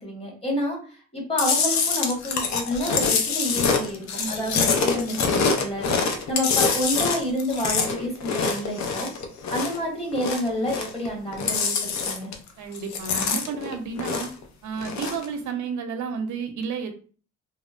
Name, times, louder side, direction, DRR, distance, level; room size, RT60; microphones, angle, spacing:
voice 1, 0.0-0.8 1.1-5.9 6.3-9.1 9.5-11.8 12.0-12.3, equal, 20° left, -2 dB, 1.3 m, -28 dB
Chewing mastication, 1.4-9.8 10.1-11.1 11.3-12.5 12.8-14.4 14.8-15.3, left 5 dB, 65° left, 0.5 m, -25 dB
voice 2, 12.6-14.3 14.6-16.9, right 5 dB, 75° right, 6 dB, 0.6 m, -31 dB
2.8 x 2.0 x 2.4 m, 0.40 s
cardioid pair, 90°, 30 cm